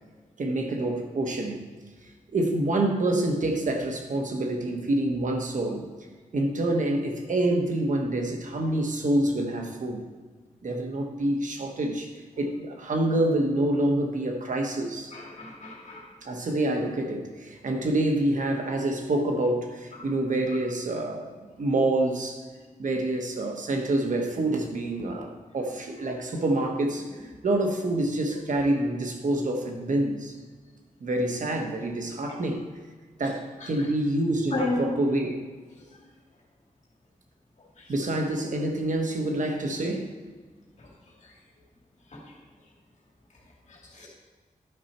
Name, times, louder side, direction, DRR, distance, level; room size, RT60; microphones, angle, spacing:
voice 1, 0.4-1.6 2.3-5.9 6.3-10.0 10.6-12.1 12.4-15.1 16.2-21.3 21.6-22.4 22.8-27.1 27.4-30.3 31.0-32.6 33.2-35.4 37.9-40.1, right 1 dB, 65° right, 2 dB, 1.2 m, -27 dB
voice 2, 15.1-16.1 20.0-20.1 32.3-32.4 33.6-33.9 34.5-34.8 37.8-37.9 40.8-40.9 41.2-41.3 42.1-42.3 43.7-44.1, left 2 dB, 60° left, -4 dB, 2.6 m, -34 dB
11.0 x 5.5 x 4.3 m, 1.4 s
wide cardioid pair, 110°, 14 cm